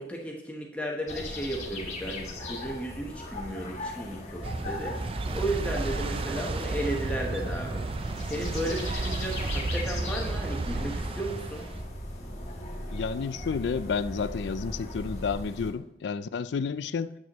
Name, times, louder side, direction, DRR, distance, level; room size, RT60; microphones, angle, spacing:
voice 1, 0.0-7.8 8.2-11.6, right 1 dB, 5° left, -1 dB, 1.0 m, -34 dB
sound 1, 1.1-15.7, left 1 dB, 40° left, 1.6 m, -38 dB
sound 2, 4.4-11.8, right 3 dB, 30° right, 0.4 m, -33 dB
voice 2, 12.9-17.2, left 5 dB, 75° left, 14 dB, 0.4 m, -31 dB
9.3 x 7.7 x 3.0 m, 0.89 s
head